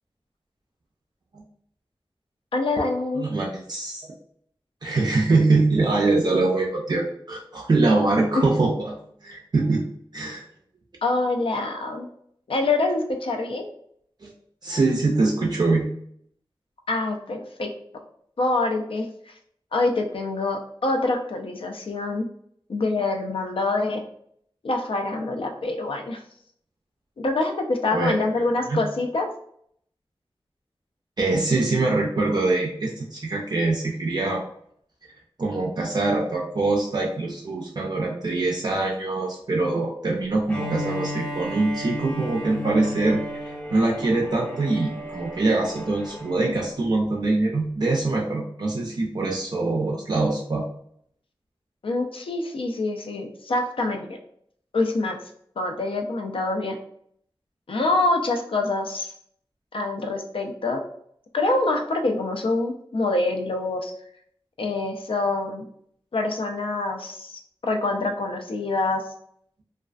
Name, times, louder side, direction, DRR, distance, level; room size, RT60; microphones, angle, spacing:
voice 1, 2.5-3.2 8.3-8.6 11.0-12.1 12.5-13.7 16.9-17.7 18.4-19.1 19.7-22.3 22.7-24.0 24.6-26.2 27.2-29.3 51.8-54.2 54.7-55.2 55.6-56.8 57.7-59.1 59.7-60.8 61.3-63.9 64.6-65.7 66.1-69.0, left 2 dB, 75° left, 4 dB, 0.4 m, -25 dB
voice 2, 3.1-4.1 4.8-9.8 10.1-10.4 14.2-14.3 14.6-15.9 27.8-28.8 31.2-34.4 35.4-50.7, right 3 dB, 50° right, -1 dB, 0.3 m, -23 dB
Bowed string instrument, 40.5-46.5, left 1 dB, 10° left, 0.6 m, -34 dB
2.3 x 2.3 x 2.3 m, 0.67 s
wide cardioid pair, 75°, 9 cm